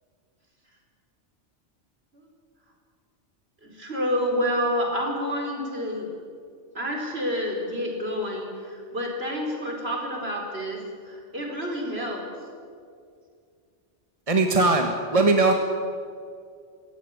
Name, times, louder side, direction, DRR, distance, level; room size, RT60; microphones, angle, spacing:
voice 1, 3.6-6.1 6.7-10.8 11.0-12.2, equal, 60° right, 0 dB, 5.0 m, -28 dB
voice 2, 14.3-15.5, right 3 dB, 30° right, 4 dB, 1.6 m, -20 dB
24.5 x 16.5 x 9.7 m, 2.3 s
omnidirectional pair, 1.2 m